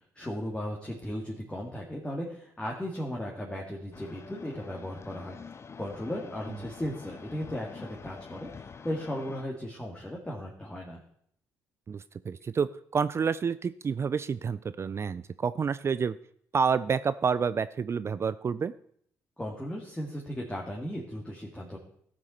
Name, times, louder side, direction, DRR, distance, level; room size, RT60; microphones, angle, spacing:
voice 1, 0.2-5.4 5.8-11.0 19.4-21.8, equal, 15° left, -2 dB, 2.2 m, -36 dB
sound 1, 3.9-9.4, left 5 dB, 35° left, 0.7 m, -46 dB
voice 2, 11.9-16.2 16.5-18.7, right 6 dB, 35° right, 15 dB, 0.4 m, -29 dB
14.0 x 6.1 x 4.3 m, 0.66 s
hypercardioid pair, 60°, 7 cm